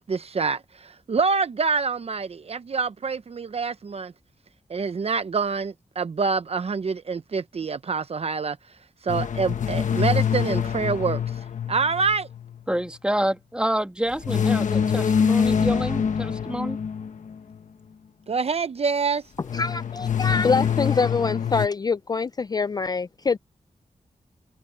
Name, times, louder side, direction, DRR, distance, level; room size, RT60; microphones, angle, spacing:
voice 1, 0.0-4.1 4.7-8.6 9.0-11.4 11.7-12.3 18.3-19.2, right 5 dB, 50° right, 0.7 m, -26 dB
sound 1, 9.1-12.6 14.2-17.3 19.4-21.7, left 7 dB, 75° left, 1.3 m, -25 dB
voice 2, 12.7-16.8, right 1 dB, 5° right, 2.1 m, -28 dB
voice 3, 19.5-23.4, left 4 dB, 30° left, 0.3 m, -25 dB
wide cardioid pair, 90°, 13 cm